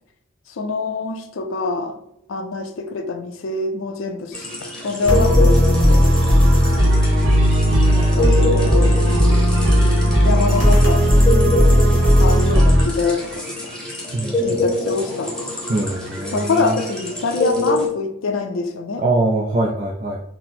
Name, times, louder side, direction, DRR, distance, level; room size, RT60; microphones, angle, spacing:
voice 1, 0.5-2.0 2.3-4.5 4.8-6.1 7.7-9.0 10.2-11.2 12.2-13.7 14.4-15.5 16.3-19.0, left 3 dB, 90° left, 6 dB, 0.5 m, -25 dB
sound 1, 4.3-17.9, left 2 dB, 5° left, 0.9 m, -26 dB
sound 2, 5.0-12.8, equal, 65° right, 1.3 m, -15 dB
voice 2, 14.1-14.6 15.7-16.8 19.0-20.2, right 2 dB, 40° right, 0 dB, 0.4 m, -22 dB
4.1 x 2.0 x 4.2 m, 0.79 s
head